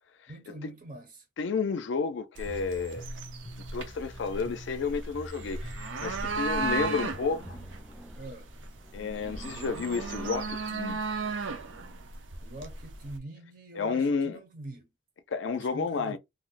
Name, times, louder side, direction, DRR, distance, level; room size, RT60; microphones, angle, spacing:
voice 1, 0.3-1.2 8.1-8.5 12.4-14.9 15.6-16.2, right 1 dB, 45° right, 0.6 m, -44 dB
voice 2, 1.4-3.1 3.7-7.6 8.9-11.0 13.7-14.4 15.3-16.2, left 5 dB, 80° left, 0.4 m, -31 dB
sound 1, 2.4-7.8, equal, 35° left, 0.6 m, -45 dB
sound 2, 2.4-13.2, right 4 dB, 90° right, 0.6 m, -36 dB
sound 3, 6.2-11.9, right 1 dB, 5° right, 0.3 m, -52 dB
2.6 x 2.1 x 3.9 m
head